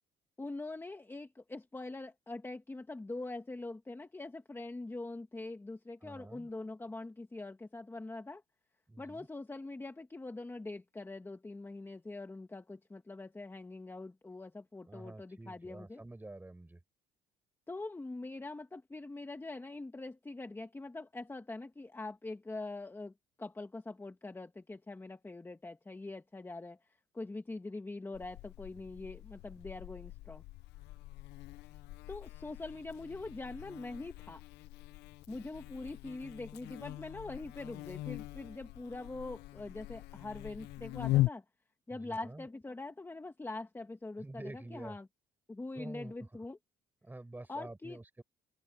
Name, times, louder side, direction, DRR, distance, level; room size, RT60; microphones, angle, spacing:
voice 1, 0.4-8.4 9.0-16.0 17.7-23.1 23.4-26.8 27.1-30.4 32.1-34.4 35.3-41.4 41.9-45.1 45.5-46.6 47.5-48.0, left 2 dB, 15° left, 1.5 m, -43 dB
voice 2, 6.0-6.5 8.9-9.3 14.9-16.8 41.9-42.5 44.2-45.0 45.7-46.3 47.0-48.2, right 2 dB, 10° right, 6.5 m, -48 dB
Buzz, 28.1-41.3, left 17 dB, 85° left, 0.6 m, -40 dB
open air
cardioid pair, 110°, 17 cm